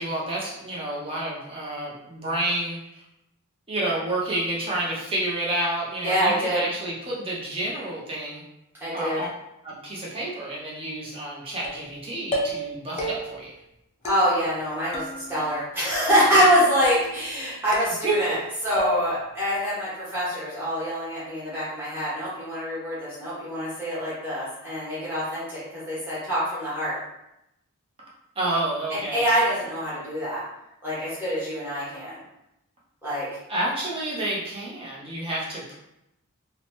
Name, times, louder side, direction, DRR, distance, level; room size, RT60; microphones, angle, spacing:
voice 1, 0.0-3.0 3.7-8.4 8.9-9.3 9.6-13.5 18.0-18.1 28.4-29.2 33.5-35.8, right 1 dB, 25° right, -4 dB, 0.6 m, -29 dB
voice 2, 6.0-6.6 8.8-9.2 14.0-18.4 18.6-27.0 28.9-30.4 30.8-32.2 33.0-33.3, equal, 10° right, -11 dB, 1.1 m, -25 dB
sound 1, 11.6-12.0 12.3-12.7 13.0-13.5 14.1-14.7 14.9-15.6 15.9-16.4 16.8-17.3 17.7-18.4 18.8-19.3, left 1 dB, 30° left, 0.4 m, -32 dB
2.8 x 2.1 x 2.9 m, 0.85 s
head